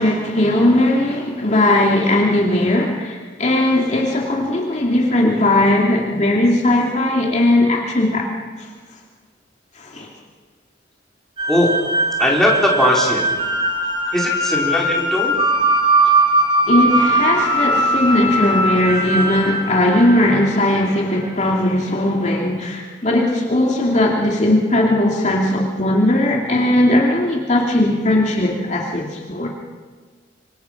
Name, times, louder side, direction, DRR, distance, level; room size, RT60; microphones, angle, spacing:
voice 1, 0.0-8.3 8.6-8.7 9.8-10.1 16.0-16.1 16.7-29.5, left 1 dB, 40° left, -1 dB, 2.5 m, -18 dB
sound 1, 11.4-20.6, right 1 dB, 30° right, 3.1 m, -19 dB
voice 2, 12.2-13.3 14.1-15.4, left 1 dB, ahead, -3 dB, 4.0 m, -18 dB
25.5 x 25.0 x 5.8 m, 1.5 s
head